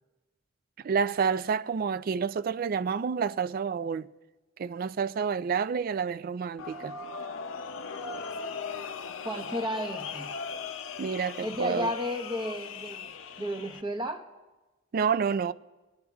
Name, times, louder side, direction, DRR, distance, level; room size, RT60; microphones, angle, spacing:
voice 1, 0.8-4.1 4.6-6.9 11.0-11.9 14.9-15.5, right 6 dB, 45° right, 0.3 m, -29 dB
sound 1, 6.6-13.8, left 5 dB, 80° left, 0.5 m, -38 dB
voice 2, 9.2-10.3 11.4-13.1 13.4-14.3, equal, 25° right, 0.8 m, -33 dB
25.0 x 12.0 x 2.4 m
head